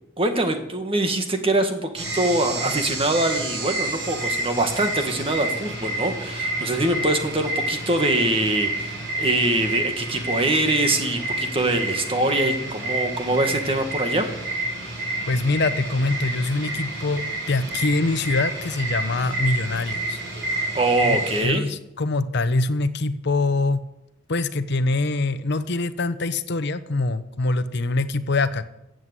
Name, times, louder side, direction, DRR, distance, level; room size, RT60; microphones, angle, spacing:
voice 1, 0.2-14.3 20.7-21.7, right 2 dB, 30° right, 6 dB, 1.7 m, -23 dB
sound 1, 2.0-21.4, right 2 dB, 60° right, 5.5 m, -29 dB
voice 2, 15.3-17.2 17.5-20.2 21.0-23.8 24.3-28.7, left 2 dB, 60° left, 12 dB, 0.8 m, -24 dB
15.0 x 7.8 x 8.2 m, 0.87 s
head